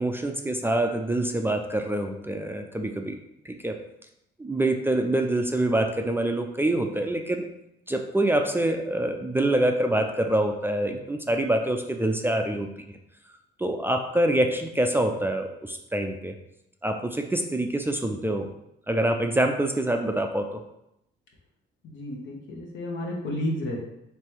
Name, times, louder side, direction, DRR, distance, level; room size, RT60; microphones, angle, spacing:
voice 1, 0.0-3.2 3.5-3.8 4.4-7.5 7.9-12.7 13.6-16.3 16.8-18.5 18.9-20.6, right 1 dB, 10° right, 4 dB, 0.4 m, -25 dB
voice 2, 21.8-23.8, left 1 dB, 70° left, -1 dB, 1.2 m, -31 dB
3.3 x 3.1 x 4.6 m, 0.81 s
cardioid pair, 90°, 20 cm